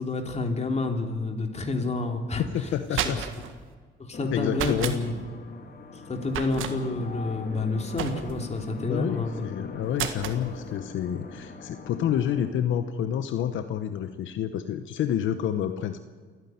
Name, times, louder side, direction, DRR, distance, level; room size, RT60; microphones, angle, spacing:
voice 1, 0.0-2.4 2.9-3.3 4.0-5.1 6.1-9.5, left 3 dB, 35° left, 4 dB, 3.3 m, -29 dB
voice 2, 2.4-3.2 4.3-5.0 8.8-16.0, left 9 dB, 80° left, 9 dB, 1.0 m, -29 dB
sound 1, 2.7-3.5 4.5-5.0 6.3-6.7 8.0-8.5 9.9-10.4, right 9 dB, 85° right, 1.7 m, -31 dB
sound 2, 4.1-12.5, left 4 dB, 50° left, 2.5 m, -42 dB
28.5 x 9.9 x 9.4 m, 1.5 s
cardioid pair, 90°, 20 cm